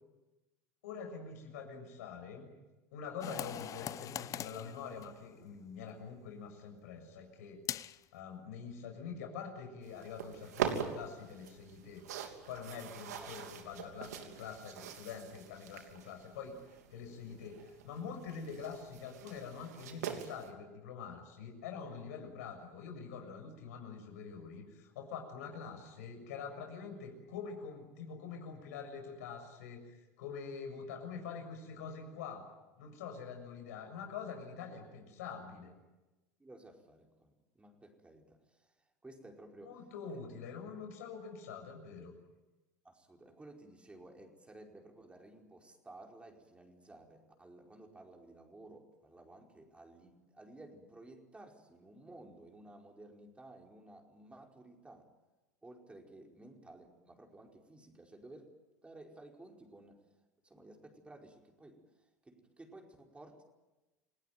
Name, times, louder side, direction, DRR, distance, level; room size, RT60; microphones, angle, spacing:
voice 1, 0.8-2.5 2.9-7.6 8.1-12.0 12.5-16.6 16.9-32.5 32.8-35.7 39.7-42.2, left 6 dB, 75° left, 4 dB, 7.0 m, -45 dB
sound 1, 3.2-5.7 7.7-8.0, left 11 dB, 40° left, 0.8 m, -42 dB
sound 2, 9.8-20.5, right 8 dB, 80° right, 3.2 m, -43 dB
voice 2, 13.2-13.7 17.2-17.5 36.4-38.7 39.0-39.8 40.1-40.2 42.8-55.1 55.6-58.5 58.8-60.0 60.4-63.4, right 2 dB, 15° right, 1 dB, 5.0 m, -55 dB
29.0 x 18.5 x 9.4 m, 1.1 s
hypercardioid pair, 85°, 9 cm